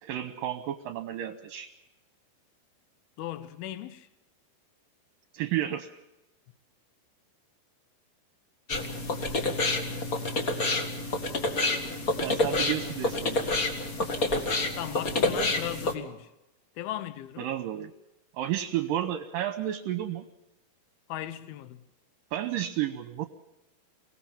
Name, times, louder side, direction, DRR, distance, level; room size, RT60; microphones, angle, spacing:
voice 1, 0.0-1.7 5.3-5.9 12.2-13.4 17.4-17.9 18.3-20.3 22.3-23.3, right 12 dB, 70° right, 2.4 m, -31 dB
voice 2, 3.2-4.1 14.8-16.3 16.8-17.5 21.1-21.8, left 13 dB, 75° left, 2.8 m, -37 dB
sound 1, 8.7-15.9, left 2 dB, 40° left, 1.2 m, -28 dB
24.5 x 18.0 x 7.3 m
omnidirectional pair, 4.6 m